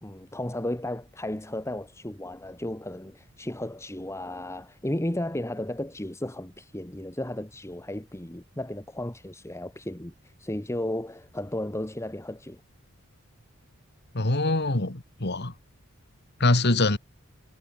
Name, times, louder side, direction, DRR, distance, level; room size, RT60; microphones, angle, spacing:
voice 1, 0.0-10.1 10.4-12.6, left 1 dB, 15° left, 1.5 m, -34 dB
voice 2, 14.1-15.5 16.4-17.0, left 2 dB, 50° left, 2.2 m, -24 dB
head